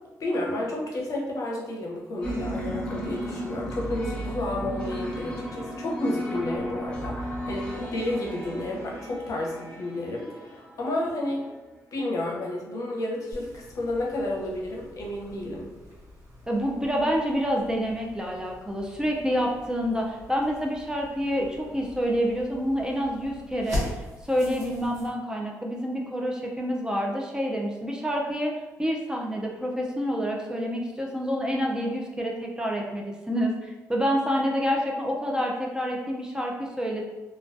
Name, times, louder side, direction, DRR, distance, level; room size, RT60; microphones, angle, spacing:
voice 1, 0.2-11.5 11.9-15.7, left 1 dB, 60° left, -2 dB, 0.6 m, -31 dB
sound 1, 2.2-11.2, equal, 15° left, 0.7 m, -34 dB
sound 2, 13.3-25.1, left 1 dB, 65° right, 1.1 m, -41 dB
voice 2, 16.5-33.5 33.9-37.0, equal, 10° right, -1 dB, 0.4 m, -28 dB
2.2 x 2.2 x 2.5 m, 1.2 s
cardioid pair, 80°, 6 cm